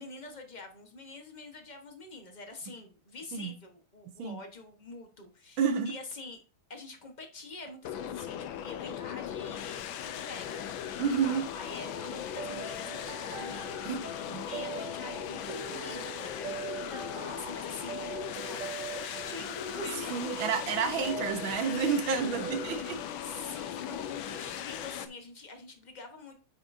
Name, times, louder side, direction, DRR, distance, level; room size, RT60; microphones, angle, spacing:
voice 1, 0.0-6.4 6.7-18.0 18.3-20.1 22.0-22.2 23.2-26.3, left 3 dB, 25° left, 1.0 m, -46 dB
voice 2, 5.6-5.9 11.0-11.4 13.9-14.0 14.3-14.5 20.1-23.0, right 6 dB, 70° right, 1.7 m, -30 dB
sound 1, 7.8-25.1, left 10 dB, 75° left, 1.4 m, -38 dB
sound 2, 12.0-23.1, right 5 dB, 50° right, 1.1 m, -42 dB
8.7 x 6.0 x 2.7 m
omnidirectional pair, 2.3 m